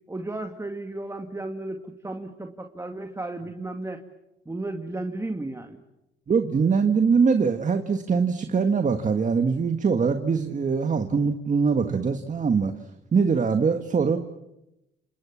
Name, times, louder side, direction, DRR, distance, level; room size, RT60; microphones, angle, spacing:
voice 1, 0.1-4.0 4.5-5.8, right 2 dB, 15° right, 6 dB, 2.1 m, -34 dB
voice 2, 6.3-12.7 13.1-14.2, right 5 dB, 40° right, 7 dB, 1.6 m, -22 dB
29.0 x 26.5 x 7.3 m, 0.92 s
cardioid pair, 90°, 20 cm